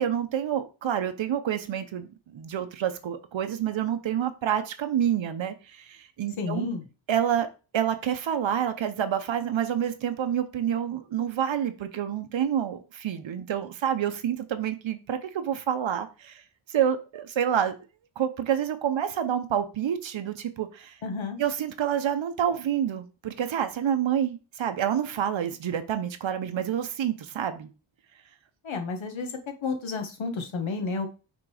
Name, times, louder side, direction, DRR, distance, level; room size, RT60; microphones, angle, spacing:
voice 1, 0.0-6.7 7.1-7.5 7.7-16.4 16.7-17.7 18.2-21.0 21.4-27.7, right 9 dB, 65° right, 8 dB, 0.9 m, -28 dB
voice 2, 6.4-6.8 21.0-21.4 28.6-29.3 29.6-31.1, left 4 dB, 70° left, 6 dB, 1.6 m, -31 dB
6.2 x 3.8 x 4.9 m, 0.31 s
wide cardioid pair, 160°, 49 cm